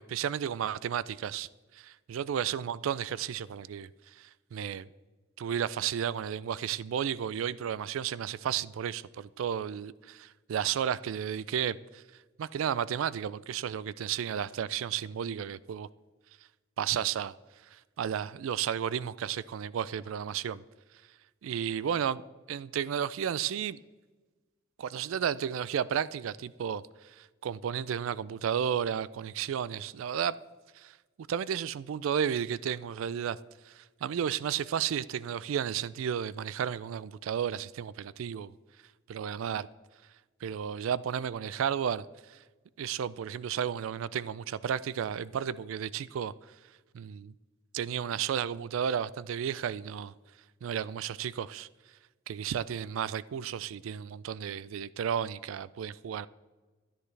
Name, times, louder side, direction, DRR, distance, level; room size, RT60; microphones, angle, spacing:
voice 1, 0.0-1.5 1.7-3.9 4.2-4.9 5.4-12.0 12.4-15.9 16.8-17.3 17.7-20.6 21.4-22.2 22.5-23.8 24.8-26.8 27.2-30.4 30.8-30.9 31.3-33.4 33.7-38.5 39.1-39.7 40.4-42.4 42.8-46.3 46.9-47.3 47.7-50.1 50.6-51.7 52.3-56.3, right 8 dB, 75° right, 0.3 m, -33 dB
13.5 x 10.0 x 3.2 m
head